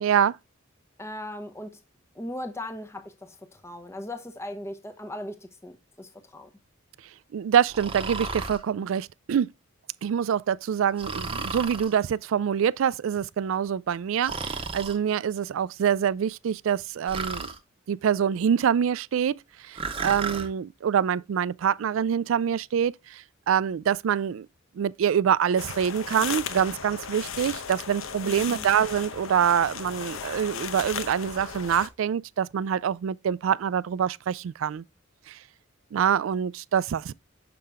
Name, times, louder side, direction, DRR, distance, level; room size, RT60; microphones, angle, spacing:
voice 1, 0.0-0.4 7.3-9.5 10.0-17.5 17.9-19.4 19.7-24.5 24.8-34.8 35.3-35.4 35.9-37.1, right 8 dB, 75° right, 0.3 m, -25 dB
voice 2, 1.0-1.8 2.2-6.5 28.2-28.6, left 1 dB, 15° left, 0.9 m, -38 dB
Breathing, 7.7-8.6 11.0-11.9 14.2-15.0 17.1-17.6 19.8-20.5, right 4 dB, 25° right, 0.9 m, -33 dB
sound 1, 25.6-31.9, left 7 dB, 85° left, 0.8 m, -36 dB
6.7 x 5.6 x 3.5 m
head